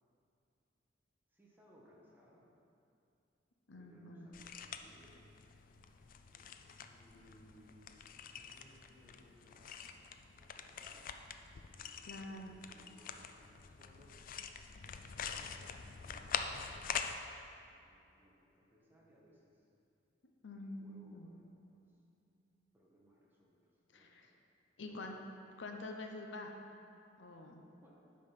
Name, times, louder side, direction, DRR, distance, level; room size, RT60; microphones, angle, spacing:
voice 1, 1.3-2.5 3.8-5.2 6.9-8.0 8.4-10.0 10.4-11.1 11.6-14.1 15.1-16.7 17.6-19.7 20.5-22.0 22.7-24.4 24.8-25.1 27.8-27.9, equal, 10° right, -4 dB, 1.4 m, -65 dB
voice 2, 3.7-4.3 12.1-12.5 20.4-21.3 23.9-24.3 24.8-25.2 25.6-26.5 27.2-27.6, left 2 dB, 75° left, 3 dB, 0.8 m, -46 dB
sound 1, 4.3-17.2, left 7 dB, 50° left, 0.4 m, -45 dB
8.7 x 5.4 x 5.9 m, 2.6 s
head